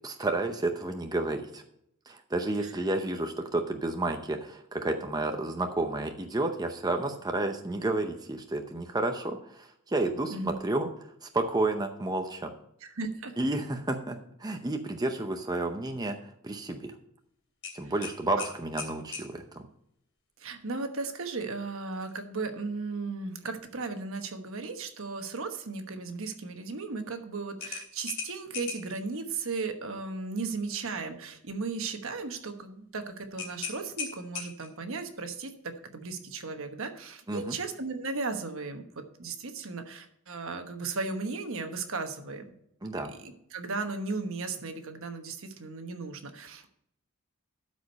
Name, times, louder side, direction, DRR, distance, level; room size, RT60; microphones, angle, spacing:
voice 1, 0.0-1.6 2.1-12.5 13.4-16.9 17.7-19.7 37.3-37.6 42.8-43.1, right 2 dB, 20° right, 5 dB, 0.7 m, -31 dB
voice 2, 12.8-13.3 17.8-17.9 18.4-18.5 20.4-35.5 35.9-42.4 43.2-46.7, right 3 dB, 65° right, 6 dB, 1.2 m, -36 dB
sound 1, 17.6-19.3 21.9-22.1 22.6-22.7 27.6-29.0 33.4-34.8, left 5 dB, 80° left, 3.0 m, -38 dB
12.5 x 5.0 x 5.3 m, 0.73 s
head